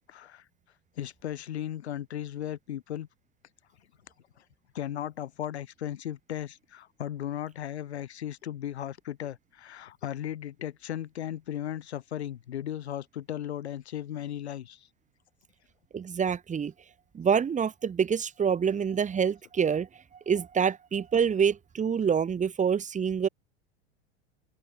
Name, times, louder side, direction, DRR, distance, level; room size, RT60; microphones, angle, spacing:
voice 1, 0.1-0.4 1.0-3.1 4.7-14.9, left 11 dB, 75° left, 3.1 m, -36 dB
voice 2, 15.9-16.7 17.1-19.9 20.3-23.3, right 7 dB, 20° right, 3.2 m, -26 dB
open air
hypercardioid pair, 95°, 33 cm